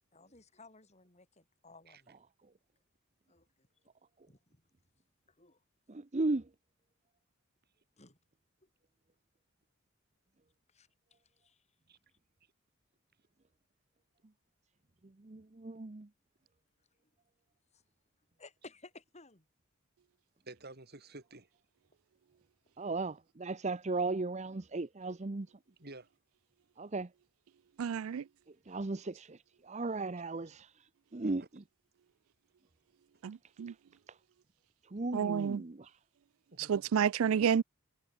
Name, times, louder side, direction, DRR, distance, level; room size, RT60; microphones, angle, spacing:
voice 1, 0.1-2.2 3.3-3.7 4.3-4.6 5.3-5.6 8.0-8.2 8.6-8.7 10.7-11.7 17.7-17.8 18.4-19.5, left 3 dB, 30° left, 7.5 m, -57 dB
voice 2, 5.9-6.5 15.2-16.1 22.8-25.5 26.8-27.1 28.7-29.4 29.6-30.7 31.1-31.4 34.9-35.9, right 3 dB, 35° right, 0.7 m, -36 dB
voice 3, 20.5-21.5 25.8-26.1 31.2-31.5 36.5-37.0, right 2 dB, 50° right, 4.3 m, -51 dB
voice 4, 27.8-28.2 33.2-33.7 35.1-35.6 36.6-37.6, right 7 dB, 85° right, 0.4 m, -30 dB
head